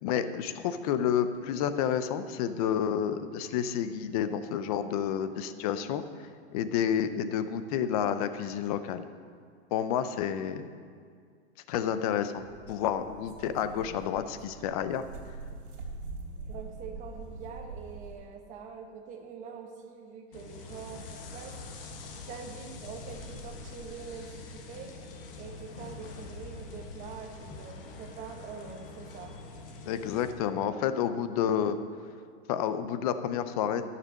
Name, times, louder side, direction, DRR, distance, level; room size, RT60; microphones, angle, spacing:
voice 1, 0.0-6.0 6.5-9.0 9.7-10.7 11.7-15.0 29.9-31.8 32.5-33.8, left 9 dB, 35° left, 11 dB, 0.5 m, -30 dB
sound 1, 12.4-18.3, right 3 dB, 45° right, 3.0 m, -44 dB
voice 2, 16.5-21.6 22.3-24.9 25.4-29.4, right 6 dB, 20° right, 4 dB, 0.9 m, -44 dB
sound 2, 20.3-30.3, left 3 dB, 55° left, 1.4 m, -44 dB
12.0 x 6.9 x 6.3 m, 2.1 s
supercardioid pair, 160°, 33 cm